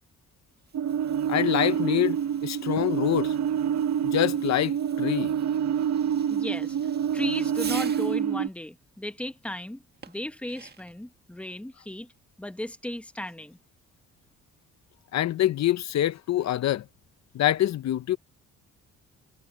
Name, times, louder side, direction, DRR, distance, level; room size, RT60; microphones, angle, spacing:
Fireworks, 0.6-8.3 10.0-11.0, right 5 dB, 35° right, 1.9 m, -47 dB
sound 1, 0.7-8.5, right 8 dB, 60° right, 1.1 m, -27 dB
voice 1, 1.3-3.3 4.0-5.3 15.1-16.8 17.3-18.2, left 13 dB, 60° left, 0.7 m, -25 dB
voice 2, 6.3-6.8 7.1-12.1 12.4-13.6, left 1 dB, 5° left, 1.2 m, -36 dB
cardioid pair, 90°, 30 cm